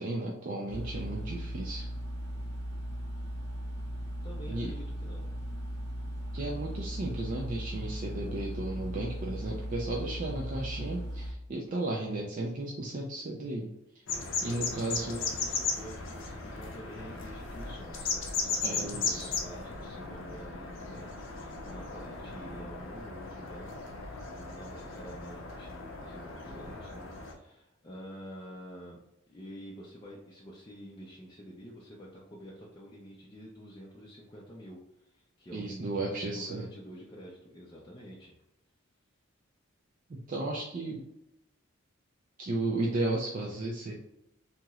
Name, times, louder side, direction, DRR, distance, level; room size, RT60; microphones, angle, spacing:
voice 1, 0.0-1.9 4.5-4.7 6.3-13.7 14.4-15.3 18.6-19.3 35.5-36.6 40.1-41.1 42.4-44.0, right 2 dB, 40° right, -2 dB, 0.4 m, -34 dB
sound 1, 0.7-11.3, equal, 55° right, 0.9 m, -37 dB
voice 2, 4.2-5.3 14.5-23.8 24.4-29.0 29.3-38.3, equal, 20° left, -4 dB, 0.4 m, -48 dB
sound 2, 14.1-27.3, left 4 dB, 65° left, 0.6 m, -37 dB
2.9 x 2.9 x 2.4 m, 0.85 s
head